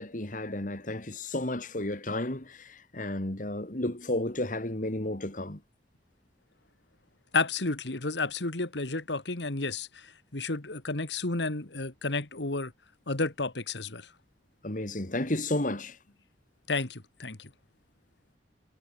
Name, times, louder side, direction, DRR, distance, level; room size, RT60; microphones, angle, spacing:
voice 1, 0.0-5.6 14.6-16.0, left 1 dB, 45° left, 2.4 m, -32 dB
voice 2, 7.3-12.7 13.1-14.1 16.7-17.5, left 3 dB, 85° left, 2.2 m, -31 dB
head